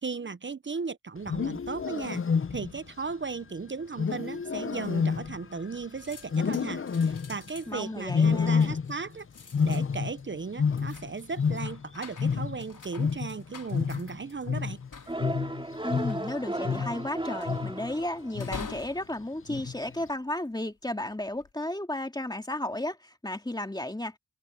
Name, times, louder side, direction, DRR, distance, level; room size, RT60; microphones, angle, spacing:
voice 1, 0.0-2.2 2.5-9.3 9.6-14.8, right 4 dB, 30° right, 0.7 m, -36 dB
Wild animals, 1.2-2.9 4.0-5.8 6.3-7.5 8.1-9.1 9.4-11.9 12.2-17.1 17.5-17.9 18.3-18.8 19.5-19.9, left 6 dB, 35° left, 0.7 m, -29 dB
sound 1, 5.2-5.7 6.0-20.5 21.1-21.5, left 5 dB, 55° left, 4.1 m, -48 dB
voice 2, 7.7-8.7 15.8-24.2, left 1 dB, 10° left, 2.3 m, -34 dB
sound 2, 15.1-18.6, right 1 dB, 15° right, 2.4 m, -35 dB
cardioid pair, 65°, 38 cm